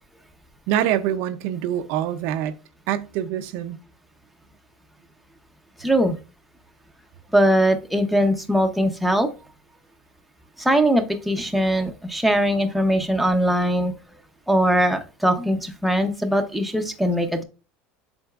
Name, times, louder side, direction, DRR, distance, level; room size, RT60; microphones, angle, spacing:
voice 1, 0.7-2.5 2.9-3.8, right 11 dB, 60° right, 0.6 m, -25 dB
voice 2, 5.8-6.1 7.3-9.3 10.6-13.9 14.5-17.4, equal, ahead, 0.7 m, -21 dB
7.9 x 5.3 x 2.4 m
cardioid pair, 160°, 4 cm